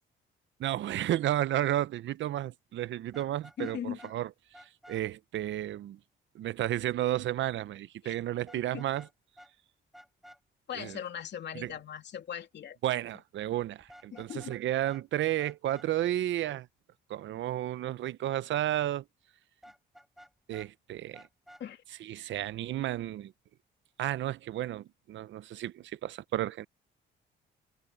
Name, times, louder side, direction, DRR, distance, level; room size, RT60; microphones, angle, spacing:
voice 1, 0.6-4.3 4.6-6.0 6.3-9.1 10.7-11.0 11.5-11.7 12.8-16.7 17.1-19.0 20.5-21.3 22.0-23.3 24.0-26.7, right 13 dB, 70° right, 0.7 m, -32 dB
Vehicle horn car horn honking, 3.1-4.1 4.5-5.0 8.5-9.1 9.4-9.5 9.9-10.4 13.8-14.6 14.8-15.0 15.4-15.9 19.6-20.7 21.1-21.6, equal, ahead, 3.8 m, -53 dB
voice 2, 3.6-4.0 8.0-8.1 8.7-8.8 10.7-12.8 14.1-14.6 21.6-21.8, left 9 dB, 60° left, 2.9 m, -39 dB
cardioid pair, 90°, 20 cm